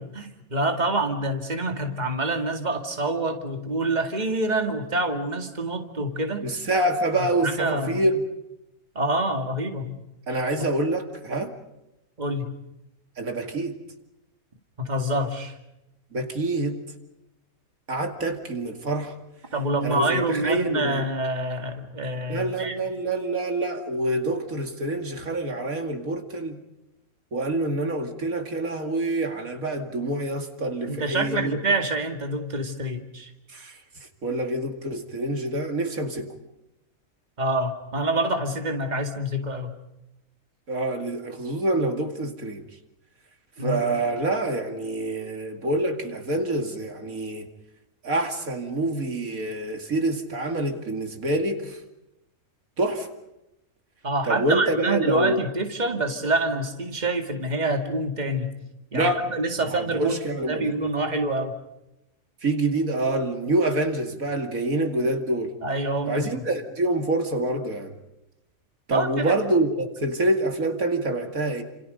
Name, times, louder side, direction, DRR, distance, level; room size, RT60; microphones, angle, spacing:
voice 1, 0.0-6.5 7.4-8.0 9.0-10.0 10.3-10.7 12.2-12.5 14.8-15.5 19.5-22.7 30.9-33.3 37.4-39.8 43.6-43.8 54.0-58.5 58.9-60.2 60.5-61.6 65.6-66.3 68.9-69.3, right 2 dB, 30° right, 4 dB, 2.4 m, -26 dB
voice 2, 6.4-8.2 10.3-11.5 13.2-13.7 16.1-16.8 17.9-19.1 19.8-21.1 22.3-26.6 27.3-31.6 33.5-33.8 34.2-36.3 40.7-42.6 43.6-47.5 48.0-51.8 52.8-53.1 54.2-55.4 58.9-59.3 59.7-60.7 62.4-65.5 66.1-67.9 68.9-71.6, right 2 dB, 75° right, 5 dB, 2.8 m, -26 dB
29.5 x 27.5 x 5.3 m, 0.89 s
omnidirectional pair, 1.5 m